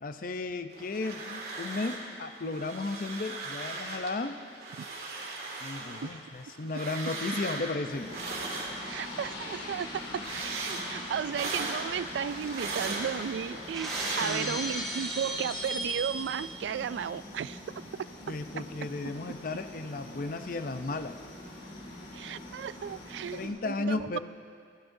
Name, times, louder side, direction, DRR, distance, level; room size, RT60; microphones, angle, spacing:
voice 1, 0.0-4.4 5.6-8.1 14.1-14.7 18.3-21.2 23.3-24.2, left 3 dB, 50° left, 9 dB, 0.6 m, -34 dB
sound 1, 0.7-2.1 2.4-4.1 4.5-9.2 9.6-14.8, right 3 dB, 60° right, 2.3 m, -38 dB
sound 2, 7.9-23.5, left 1 dB, 75° left, 3.6 m, -44 dB
voice 2, 8.9-9.9 10.1-17.6 22.1-24.2, right 8 dB, 90° right, 18 dB, 0.3 m, -34 dB
Shatter, 13.7-16.5, right 1 dB, 5° left, 2.7 m, -35 dB
29.5 x 13.0 x 2.7 m, 2.2 s
head